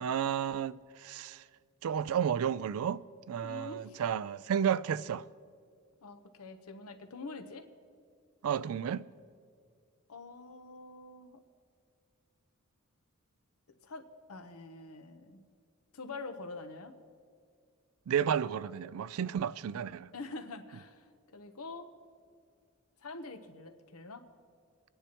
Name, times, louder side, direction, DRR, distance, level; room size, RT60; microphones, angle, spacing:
voice 1, 0.0-1.4 1.8-5.3 8.4-9.0 18.1-20.1, right 8 dB, 80° right, 0.3 m, -32 dB
voice 2, 3.4-4.0 6.0-7.6 10.1-11.4 13.8-15.4 15.9-17.0 20.1-21.9 23.0-24.3, left 3 dB, 90° left, 0.9 m, -45 dB
23.5 x 10.0 x 3.0 m
head